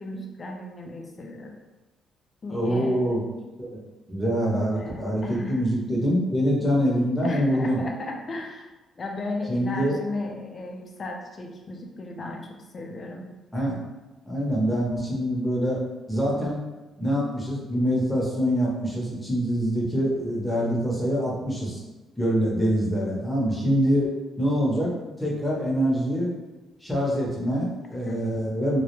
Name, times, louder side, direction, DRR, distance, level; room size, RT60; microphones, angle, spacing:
voice 1, 0.0-1.6 2.4-3.0 4.7-5.6 7.2-8.7 9.0-13.3 28.1-28.2, left 2 dB, 40° left, 2 dB, 0.4 m, -35 dB
voice 2, 2.5-3.2 3.6-3.7 4.1-7.8 9.5-10.0 13.5-13.8 14.3-15.8 16.1-16.6 17.0-21.8 22.2-24.1 24.4-26.3 26.8-28.8, equal, 10° left, -4 dB, 0.8 m, -25 dB
2.2 x 2.1 x 3.0 m, 1.1 s
cardioid pair, 90°, 0 cm